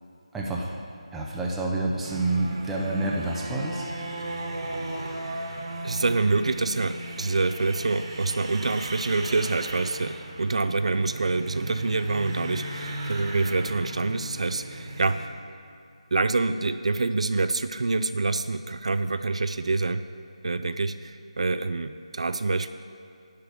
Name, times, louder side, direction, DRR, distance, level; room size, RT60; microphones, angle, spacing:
voice 1, 0.3-0.7 1.1-3.8, right 2 dB, 5° right, -3 dB, 0.6 m, -28 dB
sound 1, 2.0-15.3, right 1 dB, 40° right, 1.4 m, -36 dB
voice 2, 5.8-15.3 16.1-20.0 20.4-22.7, right 3 dB, 65° right, 10 dB, 0.4 m, -26 dB
11.0 x 4.7 x 8.0 m, 2.4 s
figure-of-eight pair, 165°, 4 cm